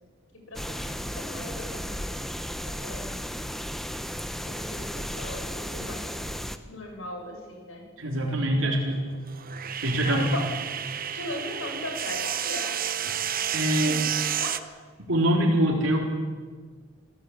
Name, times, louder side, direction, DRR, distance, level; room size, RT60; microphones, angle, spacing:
voice 1, 0.5-2.2 2.6-3.2 4.4-6.2 6.7-7.8 8.3-8.8 10.0-10.6 11.1-12.7 13.8-14.6, left 2 dB, 70° left, 2 dB, 6.9 m, -38 dB
sound 1, 0.5-6.6, equal, ahead, 0.9 m, -34 dB
voice 2, 8.0-9.1 9.8-10.3 13.5-14.0 15.1-16.0, right 1 dB, 65° right, -1 dB, 3.8 m, -24 dB
sound 2, 8.8-14.6, right 9 dB, 45° right, 1.0 m, -31 dB
26.5 x 16.0 x 8.7 m, 1.5 s
head